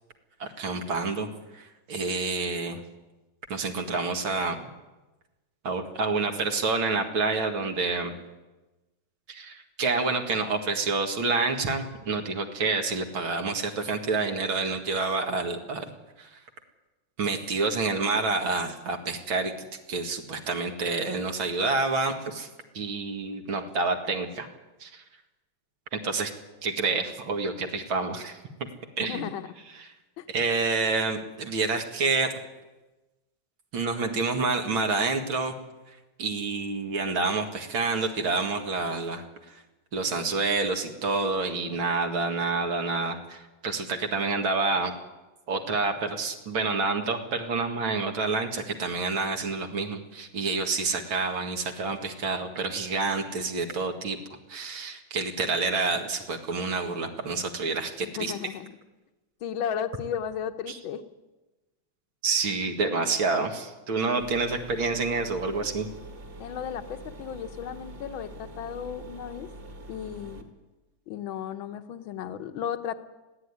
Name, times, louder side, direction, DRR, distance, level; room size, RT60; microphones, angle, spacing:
voice 1, 0.4-1.3 1.5-2.8 3.5-4.6 5.6-8.2 9.3-15.9 16.2-16.4 17.2-19.5 19.9-22.5 22.7-24.5 24.8-25.0 26.0-26.3 26.6-28.4 29.0-29.3 29.7-29.9 30.3-32.3 33.7-35.5 36.2-39.6 39.9-44.9 45.5-54.2 54.5-58.3 60.7-60.8 62.2-65.9, right 3 dB, 85° right, 4 dB, 2.8 m, -28 dB
voice 2, 29.0-29.5 30.2-30.3 58.0-58.7 59.4-61.0 66.4-69.5 69.9-70.4 71.1-72.9, left 8 dB, 80° left, 9 dB, 1.8 m, -34 dB
sound 1, 64.2-70.4, right 1 dB, 55° right, 2.8 m, -44 dB
21.0 x 15.5 x 9.8 m, 1.1 s
omnidirectional pair, 2.1 m